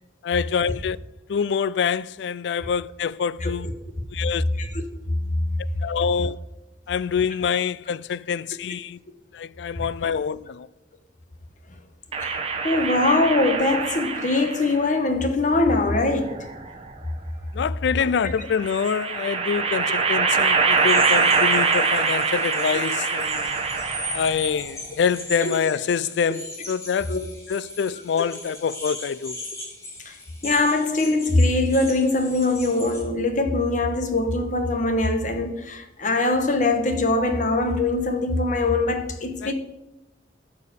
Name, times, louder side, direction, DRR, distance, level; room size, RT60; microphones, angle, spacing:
voice 1, 0.2-1.0 1.3-3.7 4.1-4.4 5.8-6.4 6.9-9.0 9.3-10.7 17.5-23.6 24.1-27.2 27.5-29.4 39.4-39.5, left 6 dB, 75° left, 0.3 m, -26 dB
sound 1, 12.1-14.8 15.9-16.9 18.5-24.5, right 4 dB, 35° right, 1.0 m, -24 dB
voice 2, 12.6-16.4 18.0-18.5 25.4-25.5 27.1-27.2 30.0-30.1 30.4-39.5, left 2 dB, 45° left, 1.2 m, -22 dB
sound 2, 20.7-33.0, left 1 dB, 15° left, 2.5 m, -38 dB
13.5 x 4.7 x 6.8 m
head